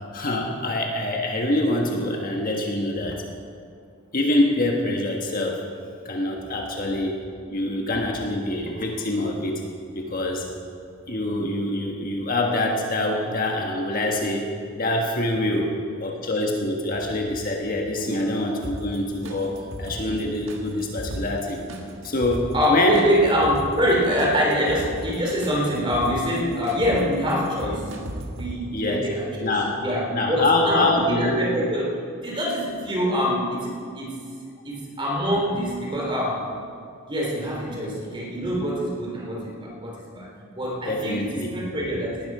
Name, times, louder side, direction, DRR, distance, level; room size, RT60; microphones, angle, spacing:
voice 1, 0.1-3.2 4.1-5.6 6.0-9.7 9.9-10.5 11.1-21.6 22.0-23.1 28.7-29.1 29.4-29.7 30.1-31.4 40.9-41.5, left 1 dB, 40° left, 1 dB, 1.5 m, -25 dB
sound 1, 18.6-28.5, right 1 dB, 65° right, 1.7 m, -37 dB
voice 2, 22.5-27.9 28.3-29.5 29.8-33.7 33.9-34.2 34.6-36.5 37.1-42.2, equal, 25° right, -2 dB, 3.5 m, -25 dB
18.5 x 12.5 x 4.9 m, 2.2 s
head